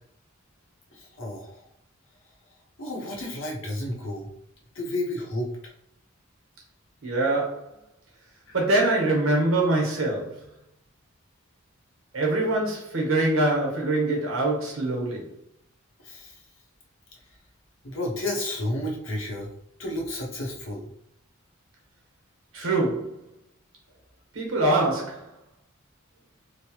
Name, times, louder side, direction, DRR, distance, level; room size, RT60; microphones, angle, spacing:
voice 1, 0.9-1.6 2.8-4.3 4.7-5.5 8.5-8.6 16.0-16.4 17.8-19.5 19.8-20.9, left 1 dB, 70° left, 0.8 m, -31 dB
voice 2, 7.0-7.7 8.5-10.4 12.1-15.3 22.5-23.2 24.3-25.3, right 2 dB, 75° right, 1.0 m, -24 dB
3.1 x 2.1 x 2.9 m
head